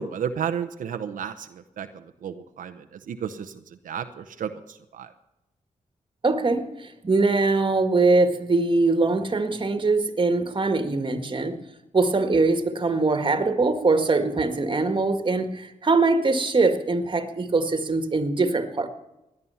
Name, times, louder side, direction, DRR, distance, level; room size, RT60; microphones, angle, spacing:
voice 1, 0.0-5.1, right 7 dB, 85° right, 7 dB, 0.8 m, -33 dB
voice 2, 6.2-11.6 11.9-18.9, right 3 dB, 40° right, 8 dB, 1.8 m, -22 dB
17.0 x 11.0 x 5.7 m, 0.93 s
cardioid pair, 75°, 13 cm